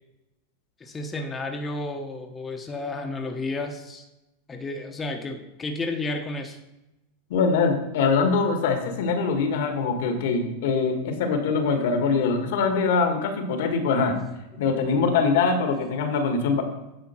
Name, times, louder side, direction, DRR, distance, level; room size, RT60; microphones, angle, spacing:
voice 1, 0.8-4.0 4.5-6.6, left 2 dB, 20° left, 4 dB, 1.1 m, -32 dB
voice 2, 7.3-14.2 14.6-16.6, left 4 dB, 70° left, 6 dB, 1.6 m, -23 dB
9.8 x 5.0 x 4.4 m, 0.97 s
hypercardioid pair, 110°, 0 cm